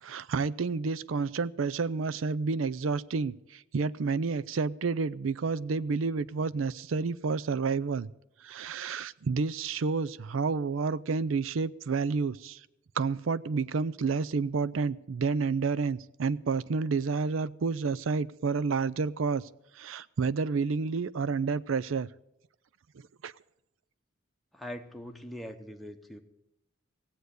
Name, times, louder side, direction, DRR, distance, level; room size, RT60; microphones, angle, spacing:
voice 1, 0.0-8.1 8.4-12.6 13.0-19.5 19.8-22.1 23.2-23.3, right 4 dB, 85° right, 19 dB, 0.5 m, -30 dB
voice 2, 24.5-26.2, equal, ahead, 3 dB, 0.9 m, -42 dB
16.5 x 7.9 x 8.2 m, 0.85 s
head